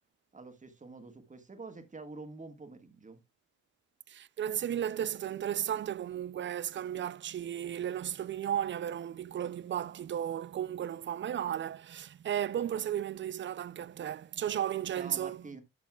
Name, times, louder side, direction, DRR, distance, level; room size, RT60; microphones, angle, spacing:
voice 1, 0.3-3.2 15.0-15.6, right 3 dB, 25° right, 1.7 m, -47 dB
voice 2, 4.1-15.4, right 10 dB, 40° right, 0.4 m, -34 dB
12.5 x 6.8 x 2.3 m
cardioid pair, 90°, 30 cm